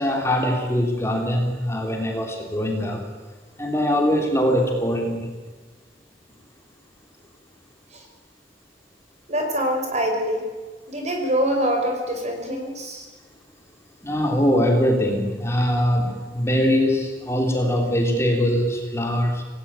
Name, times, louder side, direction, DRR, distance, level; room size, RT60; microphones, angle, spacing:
voice 1, 0.0-3.0 3.6-5.3 14.0-19.4, equal, 15° left, 2 dB, 3.5 m, -22 dB
voice 2, 9.3-10.5 10.9-13.1, equal, 40° right, 3 dB, 5.8 m, -24 dB
27.5 x 18.5 x 9.1 m, 1.4 s
head